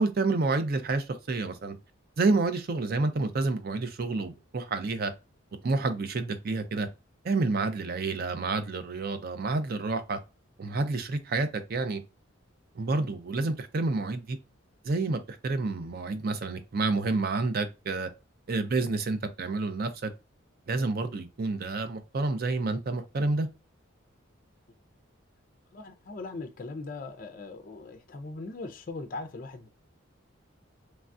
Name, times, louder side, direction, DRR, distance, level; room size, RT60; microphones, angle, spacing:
voice 1, 0.0-1.8 2.2-5.1 5.6-6.9 7.2-10.2 10.6-12.0 12.7-14.4 14.8-18.1 18.5-20.1 20.7-23.5, right 3 dB, 45° right, 0.5 m, -29 dB
voice 2, 25.7-29.7, left 3 dB, 40° left, 0.4 m, -40 dB
3.1 x 2.3 x 2.5 m
head